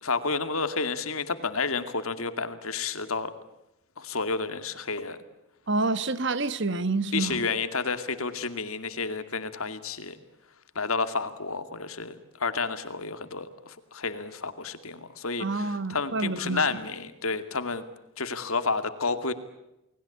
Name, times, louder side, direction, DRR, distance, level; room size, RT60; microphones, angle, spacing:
voice 1, 0.0-3.3 4.0-5.2 7.1-10.2 10.8-17.8 18.2-19.3, left 4 dB, 80° left, 2.4 m, -30 dB
voice 2, 5.7-7.5 15.4-16.6, right 3 dB, 55° right, 1.4 m, -28 dB
29.5 x 20.5 x 8.6 m
head